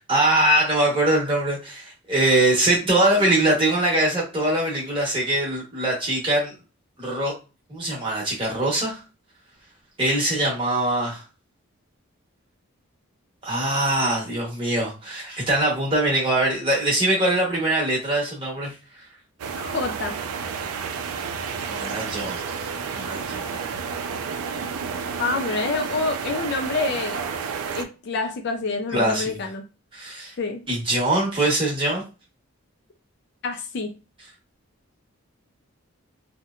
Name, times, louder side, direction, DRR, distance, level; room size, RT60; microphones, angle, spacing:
voice 1, 0.0-6.5 7.0-7.3 7.7-9.0 10.0-11.2 13.4-18.7 21.7-22.4 22.9-23.6 28.9-29.3 29.9-30.3 30.7-32.0, right 1 dB, 25° right, 1.0 m, -22 dB
sound 1, 19.4-27.8, right 6 dB, 85° right, 0.4 m, -31 dB
voice 2, 19.6-20.2 25.2-27.2 27.7-29.6 30.4-30.6 33.4-33.9, left 3 dB, 50° left, 0.3 m, -27 dB
2.9 x 2.1 x 2.3 m
head